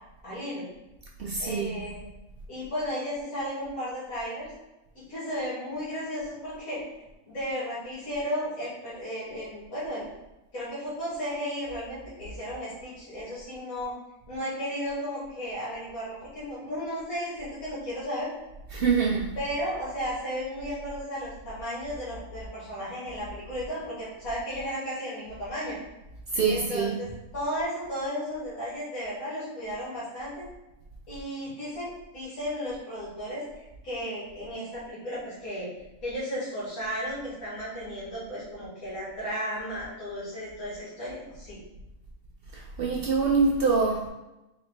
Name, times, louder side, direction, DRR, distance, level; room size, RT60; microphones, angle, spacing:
voice 1, 0.2-0.7 1.4-2.1 2.5-4.5 5.0-6.8 7.3-10.1 10.5-13.9 14.3-18.3 19.4-25.8 26.5-30.4 31.1-33.4 33.8-35.7 36.0-41.6, equal, 80° left, 2.0 m, -34 dB
voice 2, 1.2-1.8 18.7-19.3 26.3-27.0 42.5-44.1, right 4 dB, 75° right, 0.5 m, -25 dB
3.9 x 3.0 x 3.2 m
omnidirectional pair, 1.5 m